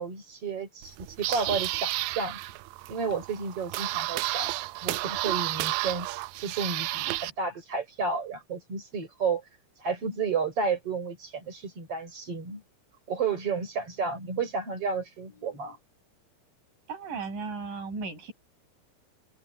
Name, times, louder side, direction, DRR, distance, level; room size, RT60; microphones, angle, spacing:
voice 1, 0.0-2.4 2.9-4.5 4.8-6.1 6.4-9.4 9.8-12.6 13.1-15.8, right 5 dB, 40° right, 7.0 m, -31 dB
sound 1, 0.8-7.3, right 18 dB, 85° right, 2.4 m, -32 dB
voice 2, 16.9-18.3, right 4 dB, 70° right, 7.8 m, -35 dB
omnidirectional pair, 4.0 m